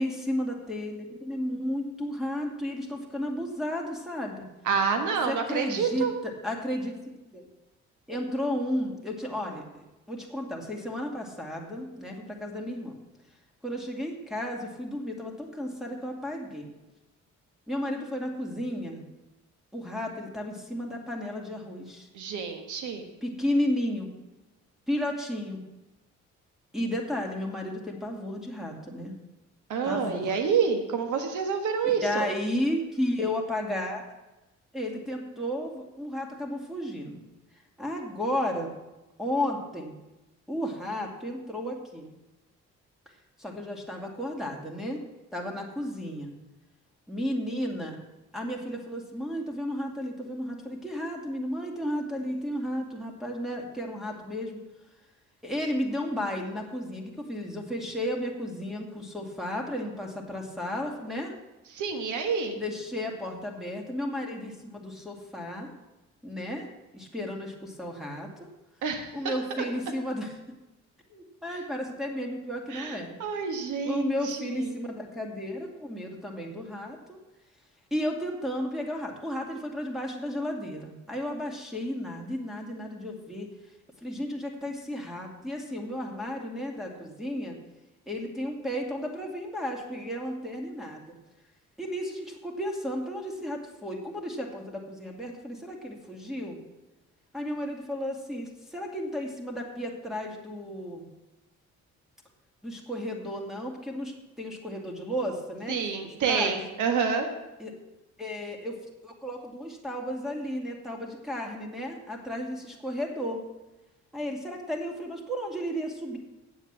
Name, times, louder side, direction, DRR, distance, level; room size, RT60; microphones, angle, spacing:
voice 1, 0.0-4.4 5.3-6.9 7.3-7.5 8.1-13.0 13.6-16.7 17.7-19.0 19.7-22.1 23.2-24.1 24.9-25.6 26.7-29.1 29.8-30.4 32.0-34.2 34.7-37.2 37.8-38.7 39.2-39.9 40.5-42.1 43.4-45.1 45.3-46.3 47.1-48.0 48.3-54.6 55.4-61.3 62.5-65.7 66.2-66.7 66.9-68.5 69.1-70.4 71.1-73.1 73.9-77.2 77.9-83.5 84.0-87.6 88.1-91.1 91.8-96.6 97.3-101.1 102.6-105.8 106.0-106.5 107.6-107.7 108.2-113.4 114.1-116.2, left 1 dB, ahead, 1 dB, 2.2 m, -33 dB
voice 2, 4.6-6.1 22.1-23.0 29.7-32.3 61.7-62.6 68.8-69.3 72.7-74.7 105.7-107.3, right 6 dB, 80° right, 6 dB, 1.5 m, -28 dB
8.5 x 7.3 x 7.4 m, 1.0 s
cardioid pair, 90°, 30 cm